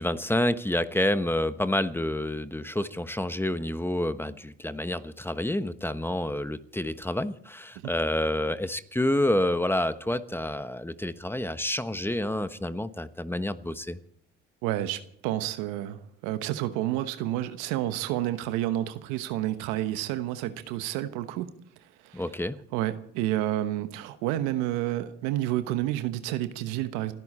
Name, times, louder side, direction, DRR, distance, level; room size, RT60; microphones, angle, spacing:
voice 1, 0.0-14.0 22.1-22.6, left 1 dB, 5° left, 1.1 m, -28 dB
voice 2, 14.6-21.5 22.0-22.3 22.7-27.1, right 14 dB, 85° right, 1.1 m, -30 dB
29.0 x 10.5 x 4.3 m
hypercardioid pair, 60°, 29 cm